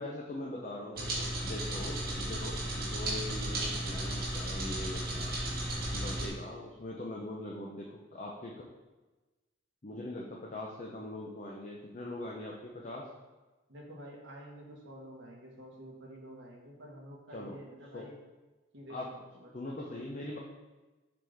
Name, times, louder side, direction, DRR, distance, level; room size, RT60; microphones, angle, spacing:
voice 1, 0.0-5.3 5.9-8.5 9.8-13.0 17.3-17.6 17.9-18.0 18.9-19.1 19.5-20.4, left 1 dB, 35° left, -2 dB, 0.6 m, -41 dB
sound 1, 1.0-6.3, right 1 dB, 45° right, 1.8 m, -34 dB
voice 2, 13.7-18.1 18.7-20.1, equal, 65° right, -2 dB, 1.5 m, -49 dB
7.6 x 4.0 x 3.4 m, 1.2 s
head